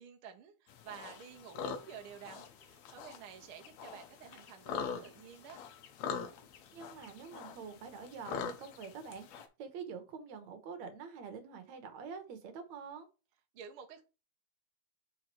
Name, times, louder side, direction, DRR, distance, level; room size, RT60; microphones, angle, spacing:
voice 1, 0.0-5.6 13.5-14.0, right 8 dB, 85° right, 4 dB, 1.2 m, -51 dB
sound 1, 0.7-9.5, left 6 dB, 70° left, 1.7 m, -44 dB
voice 2, 6.7-13.1, right 6 dB, 65° right, 8 dB, 2.1 m, -46 dB
5.2 x 4.8 x 4.4 m, 0.30 s
omnidirectional pair, 4.1 m